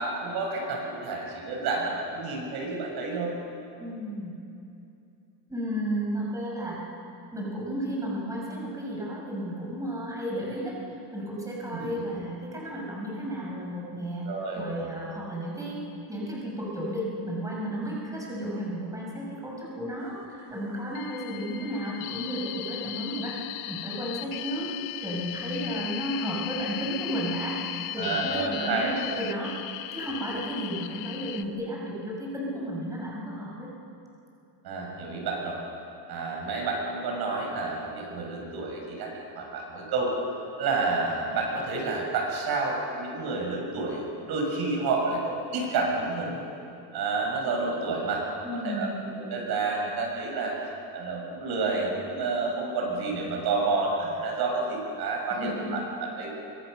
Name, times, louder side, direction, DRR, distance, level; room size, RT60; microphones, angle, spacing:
voice 1, 0.0-3.3 11.7-12.0 14.2-14.9 28.0-28.9 34.6-35.6 36.1-40.1 40.6-46.5 46.9-48.9 49.2-56.3, right 3 dB, 60° right, -1 dB, 7.6 m, -30 dB
voice 2, 3.8-4.4 5.5-6.9 7.3-10.8 11.1-14.3 14.5-15.8 16.1-23.4 23.7-24.7 25.0-33.7 48.4-49.0 55.3-55.8, equal, 5° right, -4 dB, 6.5 m, -33 dB
sound 1, 21.0-31.4, left 15 dB, 90° left, 1.2 m, -37 dB
27.5 x 25.0 x 6.8 m, 2.7 s
cardioid pair, 145°, 44 cm